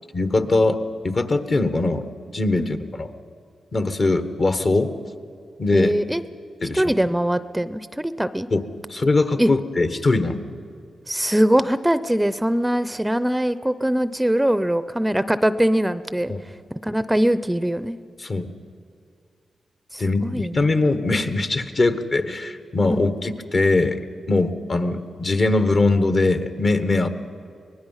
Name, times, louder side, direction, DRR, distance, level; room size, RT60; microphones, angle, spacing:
voice 1, 0.1-2.1 2.3-3.1 3.7-4.9 5.6-6.0 6.6-6.8 8.5-8.6 8.9-10.4 16.3-16.4 18.2-18.5 20.0-24.0 24.3-27.1, left 2 dB, 50° left, 9 dB, 1.4 m, -21 dB
voice 2, 5.7-6.2 6.7-8.5 9.4-9.5 11.1-16.3 16.8-18.0 19.9-20.6 22.9-23.0, right 1 dB, 10° right, 14 dB, 0.6 m, -22 dB
23.5 x 19.0 x 5.7 m, 2.3 s
cardioid pair, 55°, 0 cm